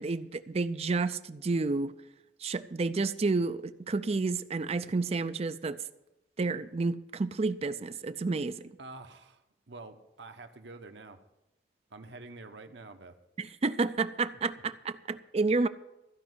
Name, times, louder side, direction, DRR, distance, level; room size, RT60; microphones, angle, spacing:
voice 1, 0.0-1.9 2.4-5.8 6.4-8.7 13.4-15.7, right 3 dB, 35° right, 0.4 m, -30 dB
voice 2, 8.8-11.2 11.9-13.2, right 3 dB, 70° right, 1.1 m, -47 dB
15.0 x 5.4 x 9.5 m
head